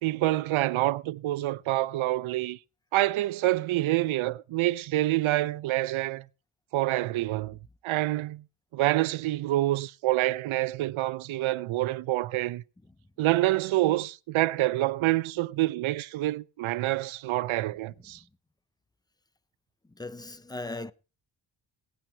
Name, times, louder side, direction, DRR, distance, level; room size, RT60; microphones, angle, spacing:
voice 1, 0.0-2.6 2.9-6.2 6.7-7.6 7.8-8.4 8.7-12.6 13.2-18.2, right 16 dB, 80° right, 0.7 m, -27 dB
voice 2, 19.8-20.9, left 2 dB, 10° left, 0.6 m, -38 dB
18.0 x 8.9 x 4.5 m
cardioid pair, 130°, 47 cm